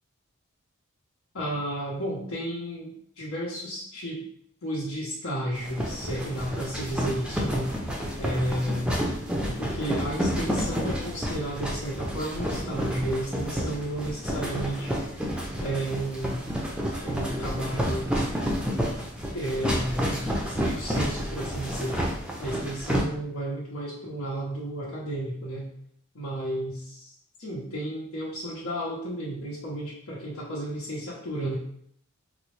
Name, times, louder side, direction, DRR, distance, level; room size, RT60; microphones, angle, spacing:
voice 1, 1.3-4.2 4.6-7.7 8.2-8.9 9.4-15.1 15.6-16.4 17.0-18.2 19.3-22.0 22.4-25.7 26.1-27.1 27.4-31.5, right 1 dB, 90° left, -8 dB, 0.8 m, -32 dB
sound 1, 5.6-23.0, equal, 5° right, 0.4 m, -30 dB
3.9 x 2.0 x 3.0 m, 0.67 s
head